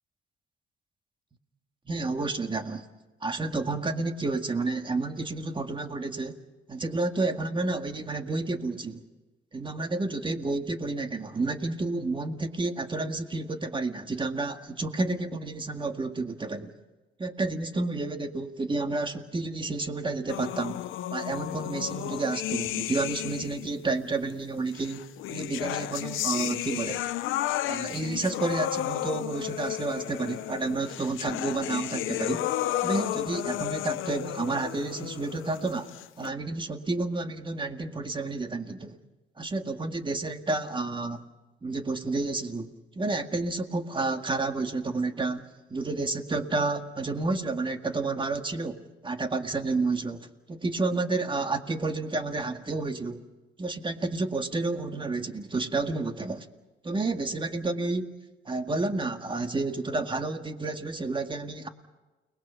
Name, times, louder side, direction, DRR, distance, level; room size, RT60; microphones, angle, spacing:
voice 1, 1.9-2.9 3.2-6.4 6.7-9.0 9.5-16.7 17.2-20.8 21.1-27.0 27.7-32.5 32.8-35.9 36.2-39.0 39.4-41.2 41.6-53.2 53.6-56.5 56.8-58.1 58.5-61.7, right 3 dB, 25° right, 6 dB, 1.9 m, -30 dB
sound 1, 20.3-23.7 24.7-36.3, left 13 dB, 90° left, 0.8 m, -33 dB
30.0 x 21.0 x 5.7 m, 1.1 s
cardioid pair, 90°, 20 cm